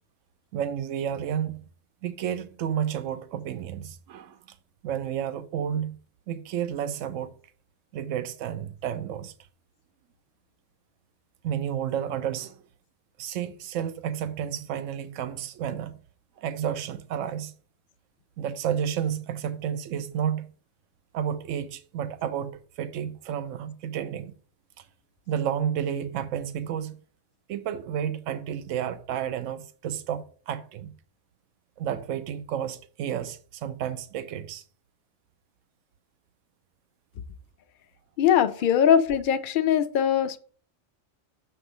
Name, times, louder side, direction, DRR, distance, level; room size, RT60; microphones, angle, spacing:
voice 1, 0.5-1.7 2.0-4.6 4.8-6.0 6.3-7.4 7.9-9.3 11.4-12.6 13.2-16.0 16.4-17.5 18.4-20.5 21.1-24.3 24.8-24.9 25.3-27.0 27.5-30.9 31.8-34.6, right 9 dB, 85° right, 1.0 m, -31 dB
voice 2, 38.2-40.4, left 9 dB, 50° left, 0.7 m, -21 dB
6.8 x 3.6 x 4.9 m
omnidirectional pair, 1.3 m